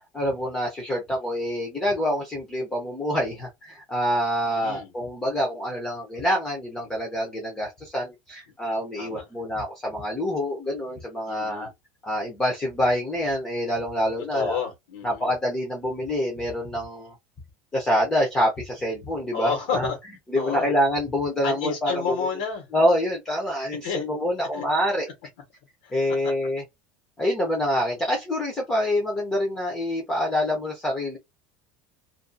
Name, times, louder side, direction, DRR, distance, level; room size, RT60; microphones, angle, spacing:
voice 1, 0.1-11.7 12.0-14.6 15.0-17.1 17.7-19.9 20.3-21.9 22.7-25.1 25.9-26.6 27.2-31.2, equal, 10° left, 0.6 m, -26 dB
voice 2, 4.4-4.9 8.9-9.2 11.3-11.7 14.2-15.3 19.3-20.0 20.3-20.7 21.4-22.7 23.8-24.1 24.5-24.6 25.8-25.9, left 6 dB, 90° left, 1.1 m, -30 dB
2.5 x 2.5 x 2.2 m
cardioid pair, 175°, 5 cm